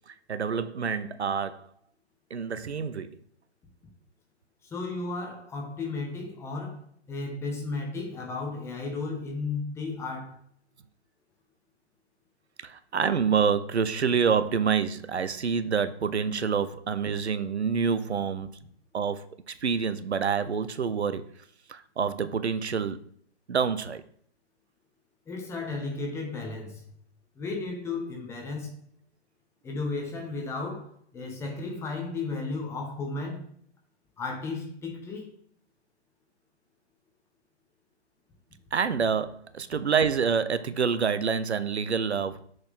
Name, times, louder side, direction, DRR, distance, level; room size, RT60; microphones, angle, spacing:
voice 1, 0.1-1.7 2.3-3.1 12.6-18.5 18.9-21.3 21.7-23.0 23.5-24.0 38.7-42.4, right 6 dB, 70° right, 0.7 m, -27 dB
voice 2, 4.6-10.4 25.3-26.8 27.3-28.7 29.6-33.5 34.2-35.3, left 3 dB, 10° left, 0.9 m, -34 dB
6.0 x 5.1 x 3.7 m
figure-of-eight pair, 130°, 34 cm